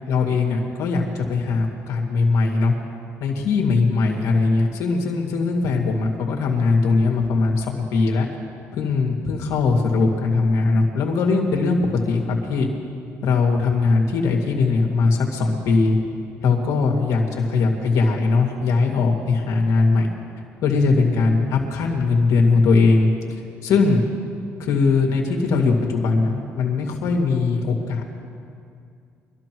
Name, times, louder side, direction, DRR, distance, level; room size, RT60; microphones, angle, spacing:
voice 1, 0.1-2.7 3.2-8.3 8.7-12.7 13.2-16.0 16.4-20.1 20.6-23.1 23.6-24.1 24.6-28.0, left 4 dB, 75° left, 0 dB, 2.2 m, -20 dB
24.5 x 13.5 x 3.1 m, 2.4 s
cardioid pair, 90°, 5 cm